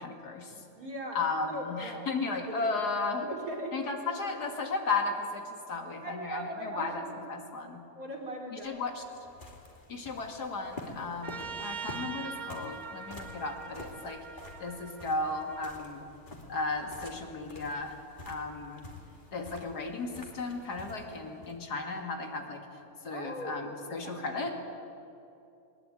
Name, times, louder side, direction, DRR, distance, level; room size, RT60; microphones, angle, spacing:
voice 1, 0.0-0.6 1.1-3.3 3.7-7.8 8.5-9.0 9.9-14.2 14.6-16.1 16.5-17.9 18.3-18.8 19.3-22.6 23.0-24.5, left 3 dB, 75° left, 3 dB, 2.7 m, -35 dB
voice 2, 0.8-2.1 2.5-2.7 3.2-3.9 6.0-7.3 7.9-8.8 23.1-24.4, right 1 dB, 60° right, -1 dB, 3.9 m, -40 dB
sound 1, 8.6-21.6, left 2 dB, 30° left, 2.7 m, -48 dB
Trumpet, 11.2-15.8, right 6 dB, 45° right, 0.6 m, -43 dB
20.5 x 20.0 x 9.0 m, 2.7 s
omnidirectional pair, 1.7 m